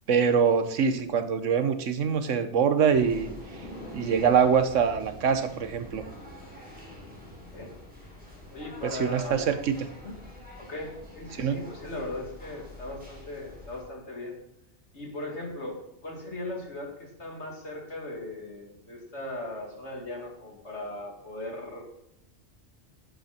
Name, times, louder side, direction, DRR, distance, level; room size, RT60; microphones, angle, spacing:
voice 1, 0.1-3.3 3.9-6.1 8.8-9.8 11.3-11.6, right 6 dB, 85° right, 11 dB, 1.3 m, -24 dB
sound 1, 2.9-13.8, left 1 dB, 5° right, 3.8 m, -45 dB
voice 2, 8.5-9.5 10.0-10.1 10.6-14.4 14.9-22.0, left 2 dB, 65° left, 0 dB, 3.0 m, -38 dB
11.5 x 9.2 x 4.4 m, 0.78 s
omnidirectional pair, 1.2 m